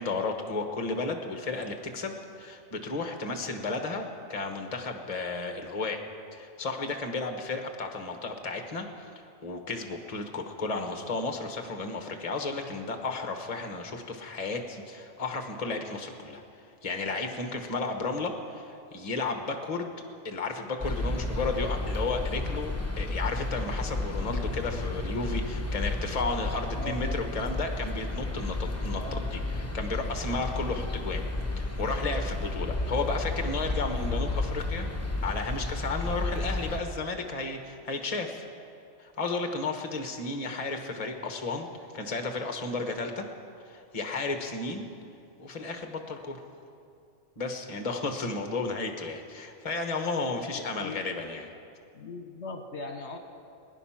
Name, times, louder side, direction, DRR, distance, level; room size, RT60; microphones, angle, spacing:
voice 1, 0.0-6.0 6.3-9.1 9.4-16.4 16.8-19.9 20.2-31.2 31.6-34.9 35.2-38.5 39.0-41.7 41.9-43.3 43.6-44.9 45.4-46.4 47.4-51.5, left 3 dB, 30° left, 5 dB, 1.2 m, -33 dB
sound 1, 20.8-36.8, left 2 dB, 15° left, 1.0 m, -32 dB
voice 2, 26.8-27.3 29.0-29.3 50.3-50.5 50.8-51.0 51.9-53.2, left 3 dB, 60° left, 4 dB, 1.4 m, -39 dB
21.5 x 10.0 x 5.8 m, 2.4 s
omnidirectional pair, 1.3 m